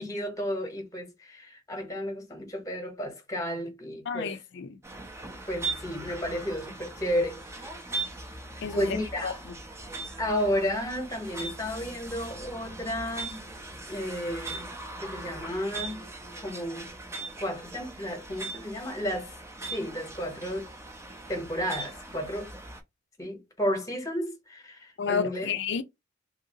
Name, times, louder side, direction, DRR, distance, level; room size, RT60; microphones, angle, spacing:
voice 1, 0.0-4.4 5.5-7.7 8.6-9.4 10.2-13.4 13.9-14.7 15.0-16.1 16.4-16.9 17.4-19.3 19.7-20.7 21.3-22.5 23.2-25.5, equal, 20° left, 1.0 m, -32 dB
voice 2, 4.1-4.8 8.6-9.0 9.2-9.3 25.0-25.8, left 6 dB, 65° left, 0.4 m, -30 dB
sound 1, 4.8-22.8, right 2 dB, 15° right, 0.6 m, -40 dB
2.8 x 2.6 x 2.8 m
head